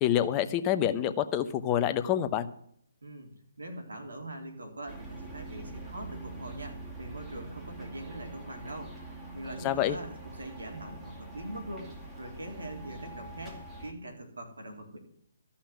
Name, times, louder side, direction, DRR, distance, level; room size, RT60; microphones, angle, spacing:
voice 1, 0.0-2.5 9.6-10.0, left 11 dB, 25° left, 10 dB, 0.9 m, -27 dB
voice 2, 3.0-3.3 3.6-9.0 9.3-15.0, right 1 dB, 85° right, 3 dB, 3.5 m, -42 dB
sound 1, 4.9-13.9, right 2 dB, 5° right, 2.8 m, -44 dB
14.0 x 5.7 x 9.2 m, 0.69 s
figure-of-eight pair, 140°, 0 cm